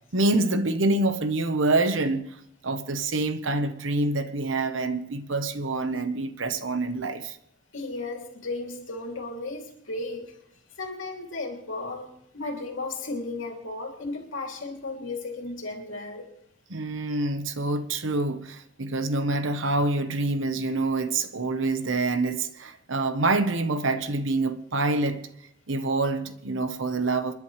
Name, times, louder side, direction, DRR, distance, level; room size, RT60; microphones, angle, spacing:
voice 1, 0.1-2.3 2.6-7.4 16.7-25.2 25.7-27.3, right 2 dB, 75° right, 1.1 m, -26 dB
voice 2, 7.7-10.3 10.8-16.3, left 2 dB, 75° left, 2.9 m, -35 dB
29.0 x 10.5 x 3.3 m
head